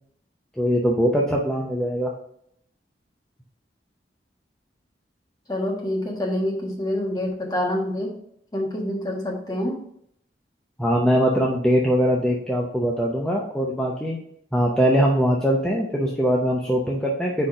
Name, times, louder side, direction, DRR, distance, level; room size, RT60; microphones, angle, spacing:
voice 1, 0.6-2.1 10.8-14.2 14.5-17.5, equal, 5° left, -3 dB, 0.6 m, -21 dB
voice 2, 5.5-8.1 8.5-9.8, left 1 dB, 20° left, -2 dB, 1.4 m, -26 dB
5.1 x 4.3 x 4.9 m, 0.69 s
head